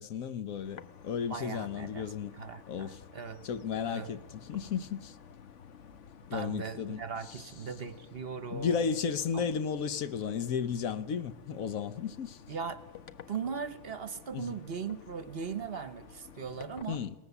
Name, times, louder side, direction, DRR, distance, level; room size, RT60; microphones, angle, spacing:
voice 1, 0.0-2.3 2.7-3.0 3.4-5.2 6.3-7.4 8.5-12.4 14.3-14.6 16.9-17.1, left 7 dB, 75° left, 1.3 m, -34 dB
sound 1, 0.6-16.8, left 7 dB, 60° left, 1.2 m, -53 dB
voice 2, 1.3-2.1 2.4-3.5 3.9-4.1 6.3-8.9 9.3-9.5 12.5-12.8 13.3-17.0, right 6 dB, 50° right, 1.1 m, -39 dB
sound 2, 4.5-6.4 7.8-8.7 9.4-9.9 10.2-10.3 11.1-11.2 12.5-14.0, equal, 15° left, 1.7 m, -60 dB
22.0 x 18.5 x 7.0 m
omnidirectional pair, 1.4 m